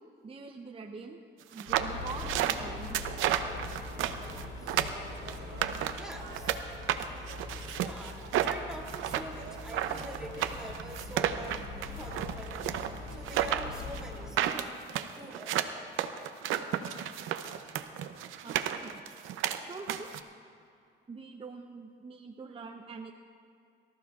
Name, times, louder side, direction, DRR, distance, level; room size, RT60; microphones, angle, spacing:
voice 1, 0.2-1.2 1.5-3.1 9.4-9.5 18.4-19.0 19.4-20.1 21.1-23.1, right 4 dB, 30° right, 3 dB, 0.7 m, -44 dB
sound 1, 1.5-6.6 6.9-20.2, right 11 dB, 90° right, 0.7 m, -32 dB
sound 2, 1.7-14.3, left 4 dB, 85° left, 3.0 m, -43 dB
sound 3, 2.1-14.7, right 4 dB, 60° right, 2.1 m, -51 dB
voice 2, 4.0-5.4 6.0-6.6 7.7-12.8 13.1-14.8 15.2-15.7, right 1 dB, 5° right, -1 dB, 2.1 m, -46 dB
23.5 x 14.0 x 2.4 m, 2.3 s
cardioid pair, 90°, 20 cm